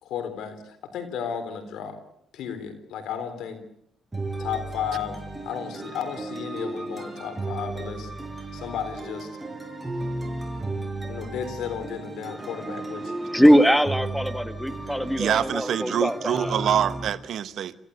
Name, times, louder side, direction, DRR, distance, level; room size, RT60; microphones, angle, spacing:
voice 1, 0.0-2.0 2.3-3.6 4.4-5.2 5.4-8.1 8.5-9.3 11.1-13.1, left 8 dB, 85° left, 3.9 m, -33 dB
sound 1, 4.1-17.1, right 2 dB, 15° right, 5.9 m, -34 dB
voice 2, 13.2-16.6, equal, 5° left, 1.6 m, -21 dB
voice 3, 15.2-17.8, right 9 dB, 70° right, 1.0 m, -25 dB
26.5 x 15.5 x 8.1 m
cardioid pair, 90°, 0 cm